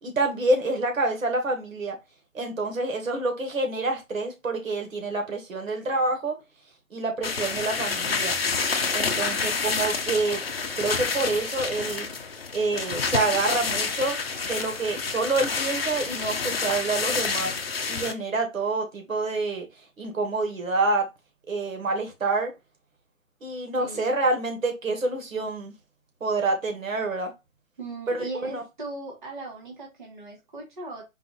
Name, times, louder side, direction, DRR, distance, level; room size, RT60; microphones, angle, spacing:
voice 1, 0.0-2.0 2.3-6.4 6.9-8.3 8.9-10.4 10.8-12.1 12.5-17.5 17.9-19.7 20.0-21.1 21.5-22.5 23.4-25.7 26.2-27.3 28.1-28.6, right 2 dB, 70° right, 1.6 m, -27 dB
sound 1, 7.2-18.1, left 5 dB, 45° left, 0.7 m, -28 dB
voice 2, 9.1-9.7 23.8-24.1 27.8-31.0, right 2 dB, 35° right, 1.3 m, -38 dB
4.6 x 2.5 x 3.9 m
hypercardioid pair, 175°, 41 cm